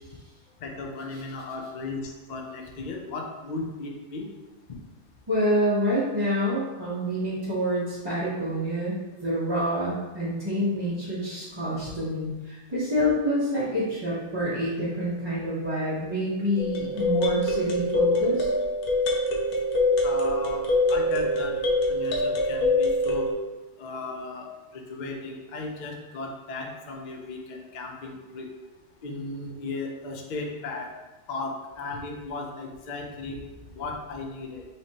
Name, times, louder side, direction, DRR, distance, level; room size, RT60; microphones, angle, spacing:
voice 1, 0.6-4.3 20.0-21.6 21.9-23.3 23.8-28.5 29.0-30.9 31.3-34.6, left 3 dB, 55° left, 2 dB, 0.5 m, -36 dB
voice 2, 5.3-18.5, equal, 20° right, -10 dB, 0.7 m, -27 dB
sound 1, 16.6-23.3, left 1 dB, 80° left, 1.2 m, -24 dB
5.6 x 3.1 x 2.8 m, 1.2 s
omnidirectional pair, 1.6 m